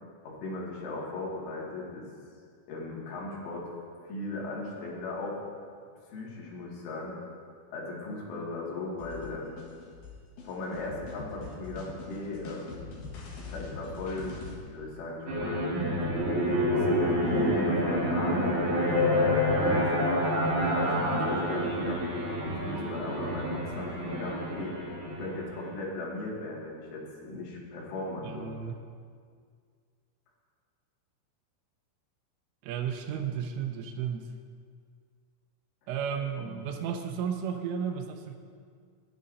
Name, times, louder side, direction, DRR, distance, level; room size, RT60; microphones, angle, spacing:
voice 1, 0.2-2.1 2.7-3.7 4.0-5.4 6.1-7.1 7.7-9.6 10.4-12.7 13.4-15.7 16.5-24.8 25.2-28.6 36.4-36.6, left 2 dB, 75° left, -4 dB, 4.6 m, -37 dB
sound 1, 9.0-14.6, left 4 dB, 60° left, 2.3 m, -43 dB
sound 2, 15.3-25.7, equal, 45° right, 3.1 m, -28 dB
voice 2, 28.2-28.8 32.6-34.3 35.9-38.4, right 7 dB, 90° right, 4 dB, 3.3 m, -33 dB
20.5 x 9.7 x 2.7 m, 2.1 s
omnidirectional pair, 5.7 m